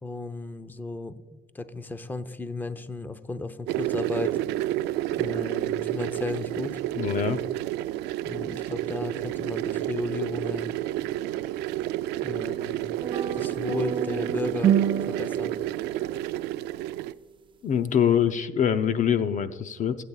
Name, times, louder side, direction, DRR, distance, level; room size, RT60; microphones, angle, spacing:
voice 1, 0.0-1.2 1.5-4.4 5.2-6.8 8.2-10.7 12.2-12.9 13.3-14.8 15.1-15.5, left 2 dB, 10° left, 11 dB, 0.6 m, -34 dB
sound 1, 3.7-17.1, right 14 dB, 90° right, 0.4 m, -30 dB
voice 2, 7.0-7.4 17.6-20.0, left 8 dB, 50° left, 11 dB, 0.6 m, -24 dB
sound 2, 13.0-16.4, right 8 dB, 30° right, 0.5 m, -28 dB
17.0 x 8.4 x 2.4 m, 1.2 s
cardioid pair, 110°, 17 cm